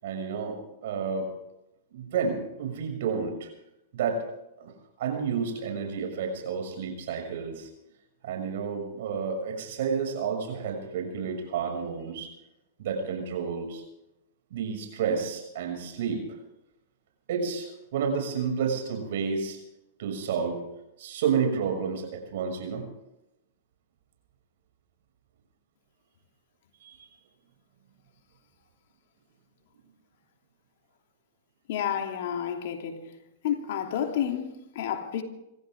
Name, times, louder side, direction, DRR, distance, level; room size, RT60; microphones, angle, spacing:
voice 1, 0.0-0.5 0.8-1.3 1.9-3.5 3.9-4.2 4.6-4.7 5.0-7.7 8.2-12.3 12.8-13.8 14.5-16.2 17.3-19.6 20.0-20.6 21.0-22.8 26.8-27.0, right 6 dB, 65° right, 6.4 m, -30 dB
voice 2, 31.7-33.1 33.4-35.2, left 9 dB, 65° left, 2.9 m, -30 dB
26.5 x 15.0 x 3.7 m
hypercardioid pair, 115°, 0 cm